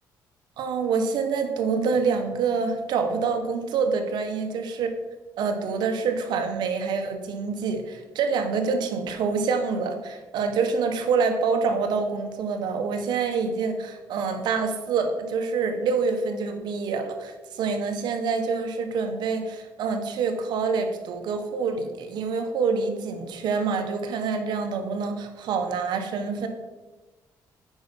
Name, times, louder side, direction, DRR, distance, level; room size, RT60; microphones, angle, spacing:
voice 1, 0.6-4.9 5.4-26.5, right 5 dB, 75° right, 6 dB, 1.3 m, -26 dB
8.8 x 5.5 x 5.4 m, 1.2 s
cardioid pair, 105°, 7 cm